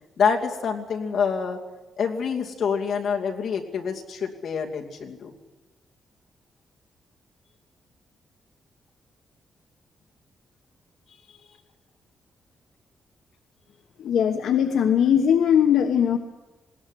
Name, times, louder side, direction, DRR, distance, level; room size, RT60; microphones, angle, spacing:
voice 1, 0.2-1.6 2.0-5.3, left 6 dB, 60° left, 1 dB, 2.7 m, -26 dB
voice 2, 14.0-16.2, left 8 dB, 85° left, 5 dB, 1.2 m, -20 dB
20.5 x 17.5 x 9.9 m, 1.1 s
wide cardioid pair, 165°, 0 cm